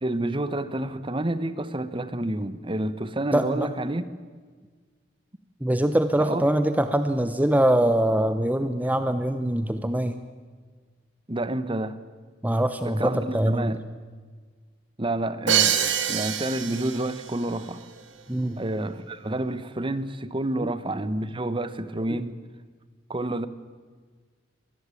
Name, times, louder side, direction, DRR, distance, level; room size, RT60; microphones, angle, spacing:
voice 1, 0.0-4.0 6.2-6.4 11.3-12.0 12.8-13.8 15.0-17.8 18.6-22.4 23.1-23.5, right 1 dB, 25° right, 1.1 m, -29 dB
voice 2, 3.3-3.7 5.6-10.2 12.4-13.7 18.3-18.6 20.6-20.7 22.1-22.2, right 1 dB, 10° right, 0.9 m, -23 dB
Crash cymbal, 15.5-17.3, right 9 dB, 70° right, 2.1 m, -25 dB
25.0 x 19.5 x 8.5 m
head